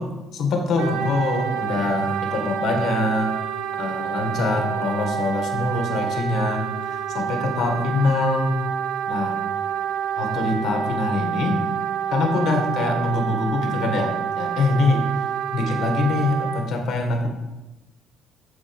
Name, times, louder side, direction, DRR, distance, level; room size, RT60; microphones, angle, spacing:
voice 1, 0.0-3.3 3.8-8.6 9.1-9.3 10.2-11.6 12.1-15.0 15.5-17.3, left 3 dB, 50° left, 3 dB, 1.6 m, -24 dB
Wind instrument woodwind instrument, 0.8-16.6, right 8 dB, 75° right, 0.9 m, -28 dB
7.3 x 7.1 x 5.3 m, 1.0 s
cardioid pair, 175°, 0 cm